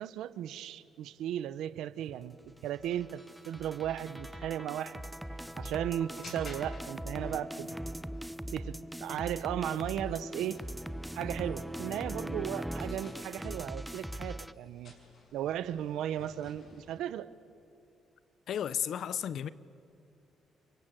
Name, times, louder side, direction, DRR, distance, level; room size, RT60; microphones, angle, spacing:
voice 1, 0.0-2.4 2.6-5.0 5.6-7.7 8.5-8.7 9.0-10.6 11.1-14.9 15.3-17.3, right 11 dB, 85° right, 1.0 m, -36 dB
sound 1, 2.6-14.5, right 1 dB, 5° right, 0.6 m, -40 dB
sound 2, 3.1-17.0, left 3 dB, 55° left, 6.6 m, -57 dB
voice 2, 18.5-19.5, left 9 dB, 70° left, 0.9 m, -33 dB
30.0 x 24.0 x 7.7 m
cardioid pair, 90°, 0 cm